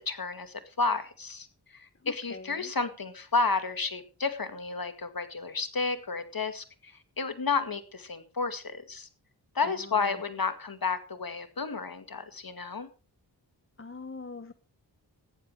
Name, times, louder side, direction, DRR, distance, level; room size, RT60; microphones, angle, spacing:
voice 1, 0.0-9.1 9.5-12.9, left 4 dB, 50° left, 2.1 m, -32 dB
voice 2, 2.0-2.7 10.0-10.1 13.8-14.5, left 4 dB, 30° left, 1.0 m, -43 dB
14.5 x 10.0 x 4.7 m
cardioid pair, 45°, 44 cm